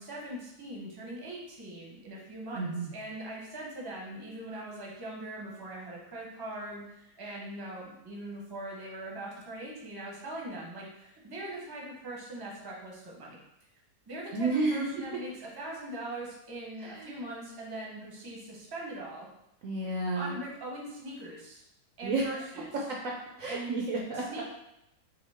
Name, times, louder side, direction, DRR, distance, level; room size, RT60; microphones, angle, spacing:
voice 1, 0.0-13.4 14.1-19.3 20.1-21.6 22.0-22.6 23.5-23.8 24.3-24.4, right 1 dB, 20° right, -3 dB, 0.7 m, -41 dB
voice 2, 2.5-2.9 14.3-14.9 16.8-17.2 19.6-20.4 22.0-22.2 22.9-24.4, right 3 dB, 65° right, -2 dB, 0.9 m, -31 dB
5.7 x 2.3 x 3.5 m, 0.82 s
omnidirectional pair, 1.7 m